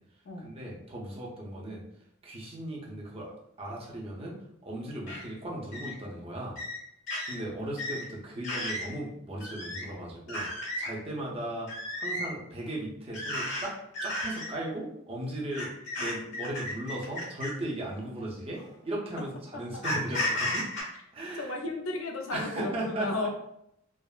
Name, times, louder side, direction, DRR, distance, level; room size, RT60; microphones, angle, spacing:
voice 1, 0.4-1.8 2.2-3.3 3.6-6.6 7.3-10.5 10.8-11.7 12.0-13.7 14.0-15.7 16.0-20.7 21.1-21.6 22.3-23.3, right 1 dB, 30° right, -3 dB, 0.6 m, -37 dB
sound 1, 5.1-5.2 5.7-5.9 6.5-6.8 7.1-7.3 7.8-8.0 8.4-8.9 9.4-9.8 10.3-10.9 11.7-12.3 13.1-13.6 13.9-14.5 15.5-17.6 18.5-18.7 19.8-20.8, left 1 dB, 60° left, 1.2 m, -33 dB
voice 2, 21.4-23.3, left 2 dB, 80° left, 3 dB, 0.5 m, -34 dB
3.4 x 2.0 x 2.3 m, 0.77 s
head